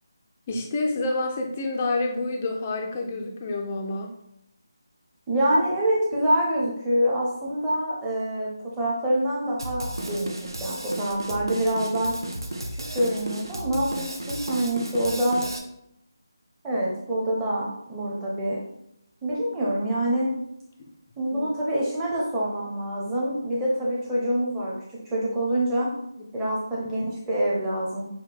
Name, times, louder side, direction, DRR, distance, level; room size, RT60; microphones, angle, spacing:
voice 1, 0.5-4.2 20.8-20.9 21.3-21.5 26.2-26.6, left 2 dB, 20° left, 2 dB, 0.4 m, -29 dB
voice 2, 5.3-12.1 12.7-15.5 16.6-18.6 19.2-20.3 21.2-24.7 25.1-25.9 26.3-28.0, right 1 dB, 10° right, -6 dB, 0.8 m, -26 dB
Drum kit, 9.6-15.6, right 1 dB, 85° right, 0.9 m, -33 dB
6.4 x 2.2 x 3.4 m, 0.78 s
figure-of-eight pair, 170°, 2 cm